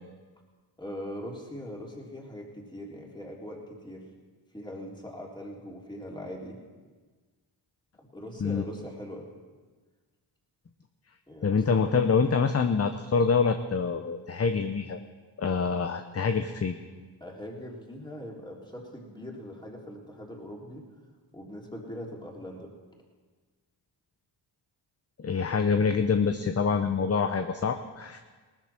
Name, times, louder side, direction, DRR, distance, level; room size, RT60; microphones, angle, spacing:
voice 1, 0.8-4.0 4.5-6.6 8.0-9.3 11.3-11.8 17.2-20.9 21.3-22.7, equal, 10° left, -2 dB, 3.5 m, -41 dB
voice 2, 11.4-15.0 15.4-16.7 25.2-28.2, left 5 dB, 30° left, 7 dB, 0.8 m, -26 dB
18.5 x 13.5 x 4.4 m, 1.4 s
cardioid pair, 70°, 47 cm